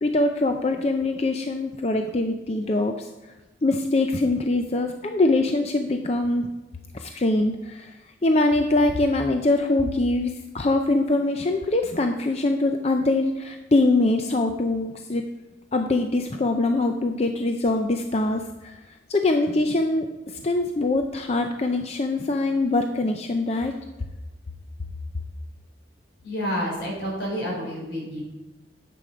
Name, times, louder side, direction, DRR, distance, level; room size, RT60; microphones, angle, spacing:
voice 1, 0.0-2.9 3.6-6.5 6.9-7.9 8.2-15.2 15.7-18.8 19.1-20.1 20.4-23.8, left 2 dB, 35° left, 5 dB, 0.5 m, -23 dB
voice 2, 26.2-28.2, equal, 75° left, -2 dB, 4.1 m, -29 dB
9.8 x 7.7 x 5.0 m, 1.1 s
head